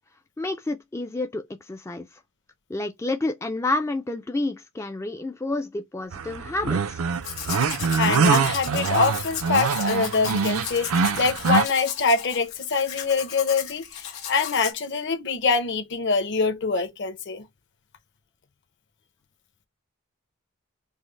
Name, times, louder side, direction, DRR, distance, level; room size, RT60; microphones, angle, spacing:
voice 1, 0.4-2.2 2.7-7.0, left 2 dB, 15° left, 0.3 m, -29 dB
sound 1, 6.1-11.7, right 5 dB, 75° right, 0.5 m, -24 dB
Domestic sounds home sounds, 7.1-14.7, left 9 dB, 75° left, 1.5 m, -36 dB
voice 2, 8.0-10.9 11.2-17.5, left 4 dB, 55° left, 0.8 m, -24 dB
5.4 x 2.0 x 3.1 m
head